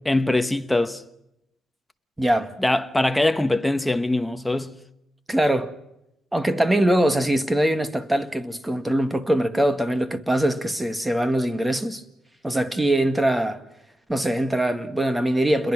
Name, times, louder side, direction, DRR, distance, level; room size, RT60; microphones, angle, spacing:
voice 1, 0.1-1.0 2.6-4.8, left 2 dB, 5° left, 1.2 m, -22 dB
voice 2, 2.2-2.5 5.3-5.7 6.3-12.0 12.4-13.6 14.1-15.7, right 1 dB, 10° right, 1.9 m, -22 dB
29.5 x 22.0 x 6.1 m
cardioid pair, 105°, 0 cm